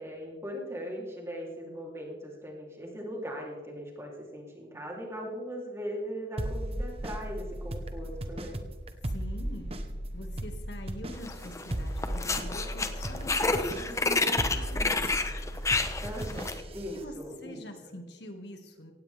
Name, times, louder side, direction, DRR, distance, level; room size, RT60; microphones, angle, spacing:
voice 1, 0.0-8.6 16.0-17.9, equal, 15° right, -1 dB, 3.3 m, -39 dB
sound 1, 6.4-17.0, right 1 dB, 30° right, 1.2 m, -36 dB
voice 2, 9.1-9.7 10.1-15.0 16.9-18.9, equal, 65° left, 4 dB, 2.1 m, -44 dB
sound 2, 11.2-11.7 12.0-16.6, left 3 dB, 15° left, 0.9 m, -29 dB
Crowd, 11.7-16.7, left 2 dB, 35° left, 4.0 m, -51 dB
17.5 x 16.5 x 3.5 m, 1.2 s
head